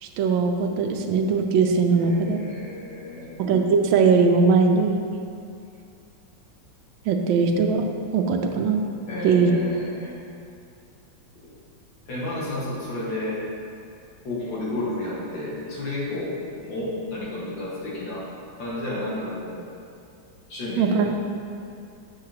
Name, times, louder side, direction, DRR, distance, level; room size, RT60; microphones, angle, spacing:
voice 1, 0.0-2.4 3.4-5.1 7.0-7.9 8.1-8.8 9.2-9.5 20.8-21.1, right 5 dB, 80° right, 4 dB, 1.4 m, -20 dB
voice 2, 1.9-3.4 9.1-10.1 12.1-13.4 14.2-18.2 18.6-19.6 20.5-21.0, left 1 dB, 70° left, -7 dB, 2.2 m, -31 dB
8.1 x 6.6 x 2.8 m, 2.5 s
omnidirectional pair, 2.1 m